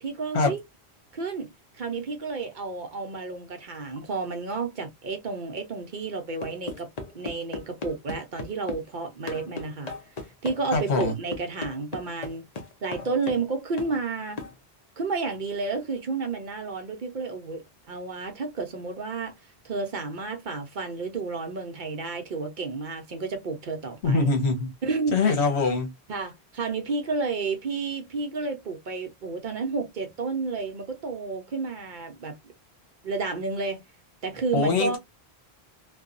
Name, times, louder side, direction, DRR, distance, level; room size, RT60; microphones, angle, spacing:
voice 1, 0.0-0.6 1.1-1.5 1.8-6.9 7.1-9.9 10.4-12.4 12.8-14.4 15.0-19.3 19.6-24.3 24.8-25.4 26.1-32.4 33.0-33.8 34.2-35.0, right 4 dB, 55° right, 0.7 m, -31 dB
sound 1, 6.4-8.9 9.3-13.5 13.8-14.0 14.4-14.6, left 4 dB, 45° left, 0.7 m, -37 dB
voice 2, 10.7-11.1 24.0-24.7 25.1-25.9 34.5-35.0, left 4 dB, 85° left, 1.1 m, -23 dB
2.7 x 2.2 x 2.4 m
omnidirectional pair, 1.1 m